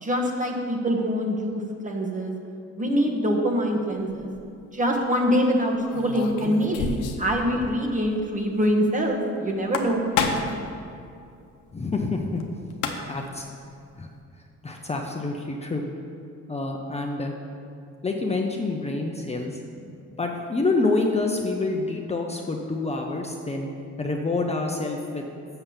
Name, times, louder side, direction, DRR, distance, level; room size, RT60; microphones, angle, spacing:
voice 1, 0.0-2.3 2.8-4.3 4.7-10.1, equal, 25° right, 1 dB, 1.3 m, -24 dB
sound 1, 4.1-4.4 5.9-7.3 7.6-7.7 8.0-8.1 9.5-10.6 12.4-12.5 12.7-13.3, left 5 dB, 90° left, 0.8 m, -28 dB
voice 2, 11.7-12.4 13.1-13.5 14.0-14.1 14.6-15.8 16.5-17.3 18.0-19.6 20.2-23.7 24.0-25.3, left 3 dB, 20° left, 1 dB, 0.7 m, -27 dB
6.8 x 5.5 x 7.2 m, 2.5 s
cardioid pair, 90°, 30 cm